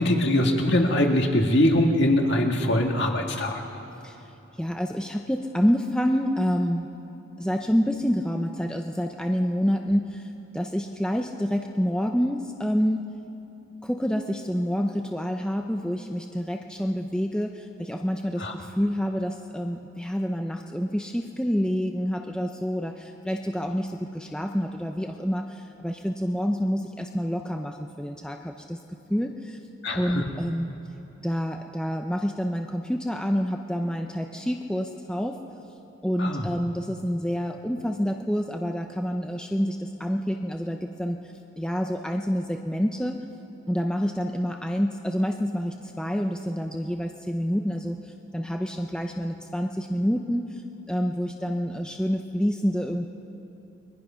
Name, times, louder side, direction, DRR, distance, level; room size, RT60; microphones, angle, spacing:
voice 1, 0.0-3.6 18.4-18.5 29.8-30.2 36.2-36.5, left 1 dB, 55° left, 2 dB, 2.0 m, -22 dB
voice 2, 4.6-6.9 7.4-13.1 13.8-28.8 29.1-29.6 29.9-30.7 31.2-35.4 36.0-41.2 41.5-43.2 43.7-50.6 50.9-53.1, equal, 5° left, 3 dB, 0.6 m, -28 dB
29.5 x 22.0 x 5.8 m, 3.0 s
head